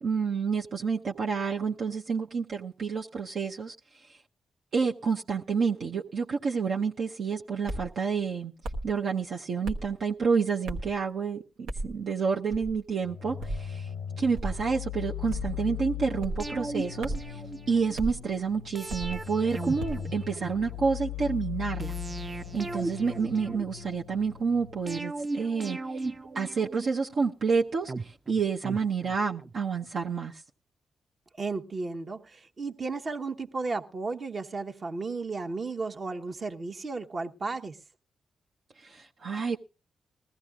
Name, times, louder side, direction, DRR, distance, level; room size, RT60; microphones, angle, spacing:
voice 1, 0.0-3.7 4.1-4.2 4.7-8.5 8.8-13.9 14.2-17.4 17.7-26.1 26.3-30.4 38.8-39.6, right 5 dB, 70° right, 0.8 m, -29 dB
sound 1, 7.7-7.9 8.6-8.9 9.6-9.9 10.7-11.0 11.7-11.9 12.5-12.8 13.4-13.7 14.3-14.6 15.3-15.6 16.2-16.5 17.0-17.3 18.0-18.2 18.9-19.2 19.8-20.1, right 1 dB, 85° right, 1.1 m, -34 dB
sound 2, 13.0-25.0, left 10 dB, 90° left, 0.6 m, -39 dB
sound 3, 16.4-18.0 18.8-20.9 21.8-24.0 24.9-27.2 27.9-29.5 29.8-29.9, right 2 dB, 30° right, 0.6 m, -38 dB
voice 2, 31.4-37.8, right 3 dB, 50° right, 1.1 m, -34 dB
20.5 x 14.5 x 2.4 m
supercardioid pair, 50°, 0 cm